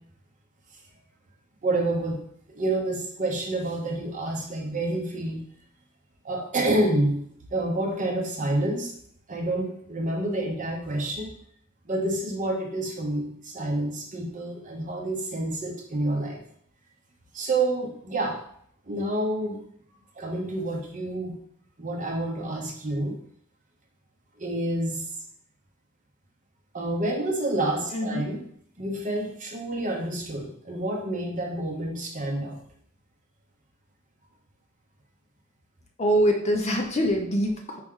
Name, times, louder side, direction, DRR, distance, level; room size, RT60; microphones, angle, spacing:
voice 1, 1.6-2.2 2.5-5.4 6.2-7.2 7.5-8.9 9.3-11.3 11.9-16.4 17.3-18.4 18.9-19.6 20.2-21.4 21.8-23.2 24.4-25.1 26.7-28.4 28.8-32.6, right 1 dB, 35° right, 0 dB, 0.8 m, -28 dB
voice 2, 27.9-28.3 36.0-37.8, equal, 30° left, 2 dB, 0.6 m, -24 dB
4.7 x 3.1 x 3.6 m, 0.65 s
head